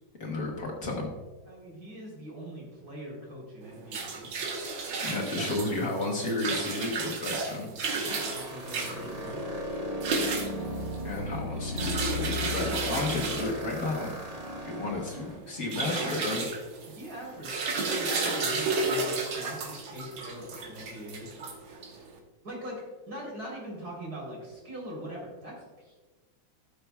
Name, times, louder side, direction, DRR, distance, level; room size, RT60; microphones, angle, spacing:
voice 1, 0.2-1.1 5.0-7.7 11.0-14.2 14.6-16.4, left 2 dB, 55° left, -1 dB, 1.5 m, -32 dB
voice 2, 1.5-4.6 7.9-9.7 15.8-16.6 16.9-21.5 22.4-26.0, equal, 50° right, -3 dB, 3.9 m, -42 dB
sound 1, 3.6-22.1, right 3 dB, 80° right, 1.9 m, -33 dB
sound 2, 8.1-15.4, left 1 dB, 25° right, 0.8 m, -36 dB
16.0 x 6.8 x 2.3 m, 1.2 s
omnidirectional pair, 2.1 m